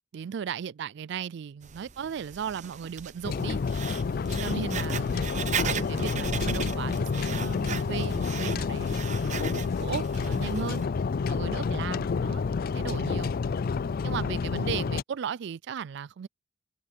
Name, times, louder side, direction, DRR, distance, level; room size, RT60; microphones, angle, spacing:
voice 1, 0.1-3.6 4.3-10.8 11.3-12.4 12.7-13.3 14.0-16.3, right 7 dB, 65° right, 0.4 m, -36 dB
Writing, 1.6-10.8, right 7 dB, 40° right, 0.7 m, -37 dB
sound 1, 3.2-15.0, left 5 dB, 50° left, 0.4 m, -29 dB
head